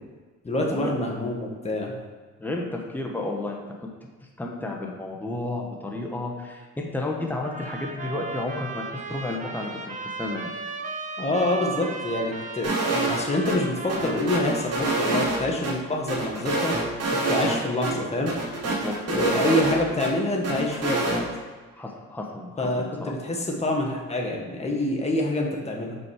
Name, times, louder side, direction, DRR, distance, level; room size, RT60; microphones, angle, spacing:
voice 1, 0.4-1.9 11.2-16.7 17.3-18.3 19.1-21.2 22.6-26.0, left 1 dB, 20° left, -1 dB, 1.4 m, -26 dB
voice 2, 2.4-3.9 4.4-10.5 18.6-18.9 21.7-23.1, left 2 dB, 5° left, 0 dB, 1.1 m, -32 dB
sound 1, 7.4-15.2, right 3 dB, 25° right, 0.8 m, -36 dB
sound 2, 12.6-13.2 13.4-13.6 13.9-15.7 16.1-17.6 17.8-17.9 18.3-20.1 20.4-21.2, right 2 dB, 55° right, 1.6 m, -26 dB
5.5 x 5.2 x 4.8 m, 1.4 s
cardioid pair, 90°, 30 cm